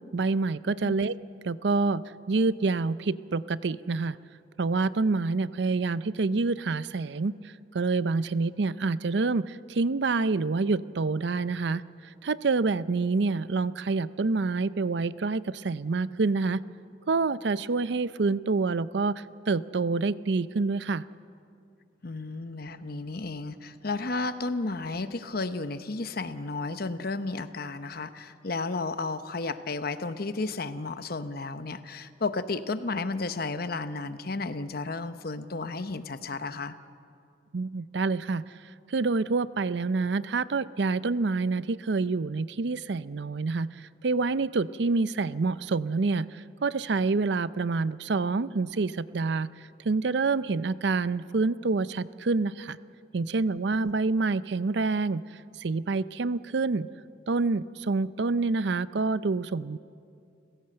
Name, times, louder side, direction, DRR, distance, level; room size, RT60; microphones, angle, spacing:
voice 1, 0.1-1.2 1.4-4.2 4.6-16.6 17.1-21.0 37.5-38.6 38.9-49.5 49.8-52.8 53.1-55.2 55.6-56.9 57.3-59.8, right 3 dB, 65° right, 16 dB, 0.5 m, -27 dB
voice 2, 22.0-36.7, left 3 dB, 55° left, 11 dB, 0.9 m, -33 dB
30.0 x 16.0 x 7.8 m, 2.5 s
head